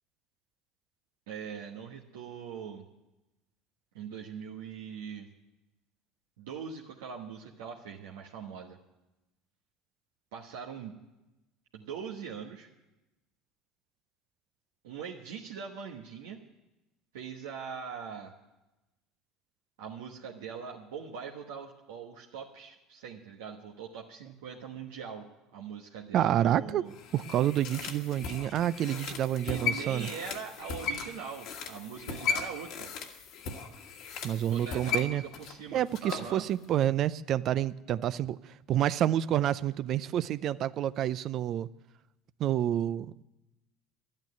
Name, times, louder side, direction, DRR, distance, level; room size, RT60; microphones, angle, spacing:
voice 1, 1.3-2.8 3.9-5.3 6.4-8.8 10.3-11.0 11.7-12.7 14.8-16.4 17.1-18.3 19.8-26.9 29.5-32.9 34.4-36.4, right 6 dB, 80° right, 0 dB, 1.2 m, -42 dB
voice 2, 26.1-26.8 27.1-30.1 34.2-35.2 35.7-41.7 42.4-43.2, right 11 dB, 55° right, 16 dB, 0.5 m, -28 dB
sound 1, 26.9-36.3 36.6-36.7, left 6 dB, 65° left, 1.6 m, -37 dB
12.0 x 8.9 x 9.6 m, 0.99 s
hypercardioid pair, 80°, 0 cm